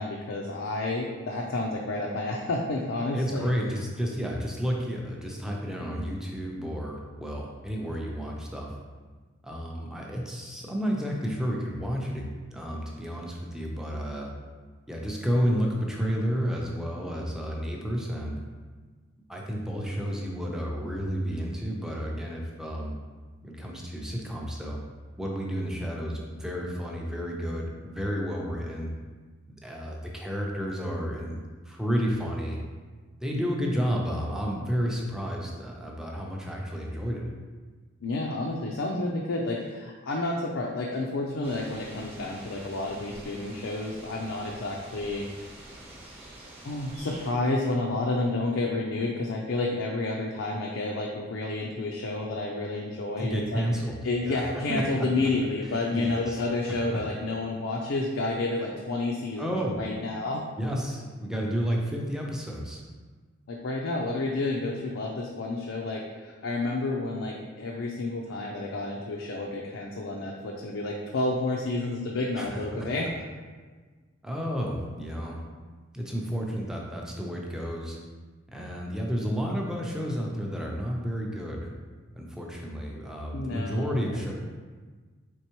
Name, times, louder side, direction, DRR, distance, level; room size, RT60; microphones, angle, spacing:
voice 1, 0.0-3.5 38.0-45.3 46.6-53.6 54.0-59.5 59.8-60.5 63.5-73.1 83.3-84.2, left 2 dB, 80° left, -1 dB, 0.5 m, -30 dB
voice 2, 3.1-8.7 9.4-14.3 14.9-18.4 19.3-23.0 23.4-24.8 25.2-28.9 29.6-31.4 31.7-32.6 33.2-37.3 53.2-54.4 54.7-55.3 55.9-56.4 56.9-57.0 59.4-59.8 60.6-62.8 72.4-72.9 74.2-75.4 75.9-78.0 78.5-81.7 82.1-84.3, equal, 5° right, -2 dB, 0.5 m, -31 dB
sound 1, 41.4-47.3, right 1 dB, 30° right, 0.9 m, -46 dB
4.5 x 3.4 x 2.9 m, 1.4 s
head